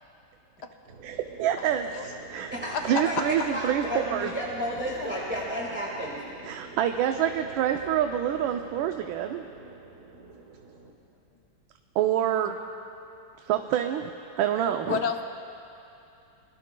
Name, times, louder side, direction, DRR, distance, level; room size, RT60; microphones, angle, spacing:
sound 1, 0.9-10.9, right 4 dB, 45° right, 1.4 m, -47 dB
voice 1, 1.0-1.8 2.3-2.5 2.8-4.3 6.4-9.5 12.0-12.6 13.5-14.1 14.4-15.0, right 10 dB, 85° right, 5 dB, 1.4 m, -26 dB
voice 2, 2.5-6.2, equal, 5° right, -5 dB, 1.4 m, -32 dB
voice 3, 14.8-15.2, left 7 dB, 65° left, 5 dB, 1.3 m, -29 dB
27.5 x 21.5 x 2.2 m, 2.7 s
omnidirectional pair, 2.1 m